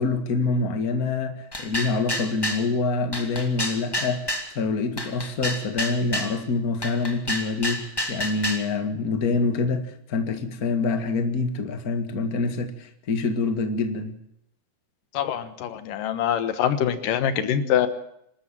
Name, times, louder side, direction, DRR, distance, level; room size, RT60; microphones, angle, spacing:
voice 1, 0.0-4.3 4.5-14.1, left 3 dB, 30° left, 7 dB, 1.9 m, -26 dB
sound 1, 1.5-2.7 3.1-4.5 5.0-6.3 6.8-8.7, equal, 10° left, 1.6 m, -29 dB
voice 2, 15.1-17.9, left 9 dB, 85° left, 11 dB, 2.9 m, -24 dB
26.5 x 13.0 x 7.6 m, 0.78 s
omnidirectional pair, 3.8 m